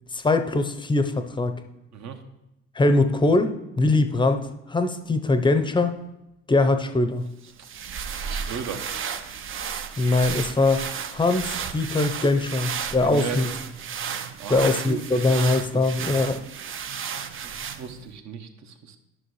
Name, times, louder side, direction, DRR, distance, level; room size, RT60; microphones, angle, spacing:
voice 1, 0.1-1.6 2.8-6.0 6.5-7.2 9.6-10.8 11.1-13.5 14.5-16.4, left 2 dB, 15° left, 8 dB, 0.7 m, -22 dB
sound 1, 7.4-18.1, right 7 dB, 40° right, 0.6 m, -33 dB
voice 2, 8.2-8.8 13.0-13.4 14.4-15.0 15.7-16.1 17.4-17.5 17.8-19.0, right 7 dB, 55° right, 6 dB, 1.1 m, -35 dB
11.0 x 6.1 x 3.2 m, 0.91 s
supercardioid pair, 75°, 34 cm